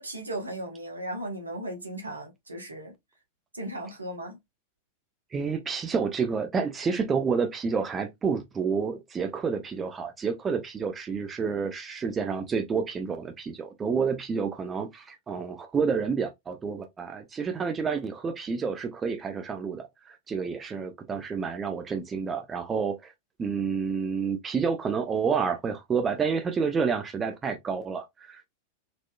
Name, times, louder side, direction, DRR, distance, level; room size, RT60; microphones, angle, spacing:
voice 1, 0.0-2.9 3.5-4.4, right 1 dB, 80° right, 1.3 m, -36 dB
voice 2, 5.3-23.1 23.4-28.5, right 5 dB, 20° right, 0.7 m, -29 dB
4.1 x 3.0 x 2.2 m
figure-of-eight pair, 90°, 0 cm